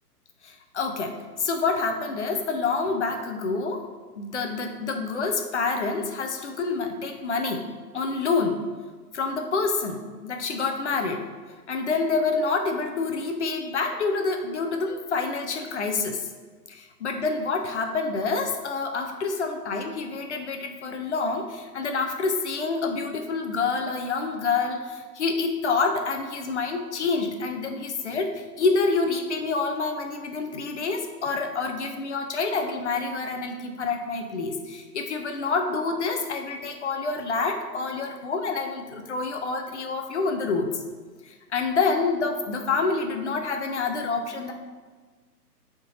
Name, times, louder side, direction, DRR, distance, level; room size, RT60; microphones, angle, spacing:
voice 1, 0.4-3.8 4.2-7.7 7.9-8.6 9.1-11.2 11.7-16.3 16.7-40.8 41.2-44.5, left 4 dB, 45° left, 4 dB, 0.7 m, -27 dB
9.8 x 3.8 x 2.7 m, 1.4 s
hypercardioid pair, 150°, 49 cm